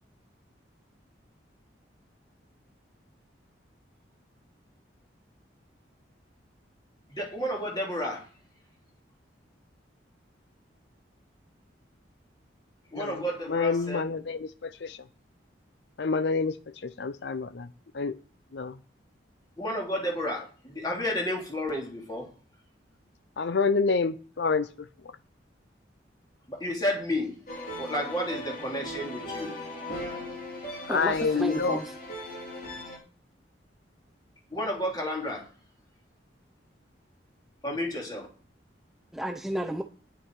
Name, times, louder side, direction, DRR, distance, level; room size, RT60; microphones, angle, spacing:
voice 1, 7.1-8.3 12.9-14.0 19.6-22.3 26.5-27.4 27.8-29.5 34.5-35.5 37.6-38.3, left 1 dB, 20° left, 2.9 m, -31 dB
voice 2, 12.9-15.0 16.0-17.7 17.9-18.2 18.5-18.8 23.4-25.1 30.9-31.8, left 4 dB, 70° left, 0.5 m, -28 dB
sound 1, 27.5-33.0, left 1 dB, 45° left, 4.0 m, -38 dB
voice 3, 30.9-31.9 39.1-39.8, equal, ahead, 0.6 m, -32 dB
10.5 x 9.0 x 4.7 m
head